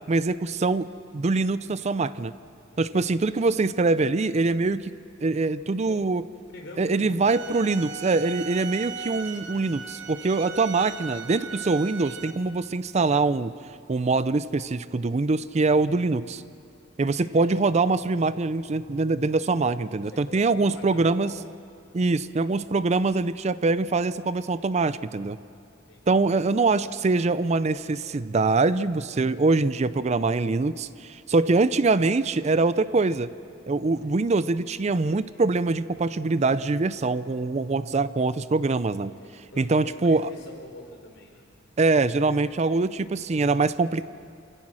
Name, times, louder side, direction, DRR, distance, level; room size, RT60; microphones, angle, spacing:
voice 1, 0.1-0.9 1.1-2.3 2.8-5.0 5.2-6.2 6.8-13.5 13.9-16.4 17.0-21.3 21.9-25.4 26.1-33.3 33.7-39.1 39.6-40.3 41.8-44.1, right 3 dB, 35° right, 15 dB, 0.5 m, -24 dB
voice 2, 2.7-3.2 5.8-6.0 6.5-7.3 17.0-17.5 20.0-21.4 25.7-26.1 33.8-34.2 39.0-41.5, left 1 dB, 75° left, 1 dB, 3.9 m, -46 dB
sound 1, 7.3-12.3, right 6 dB, 70° right, 1.2 m, -38 dB
26.5 x 16.0 x 6.3 m, 2.3 s
head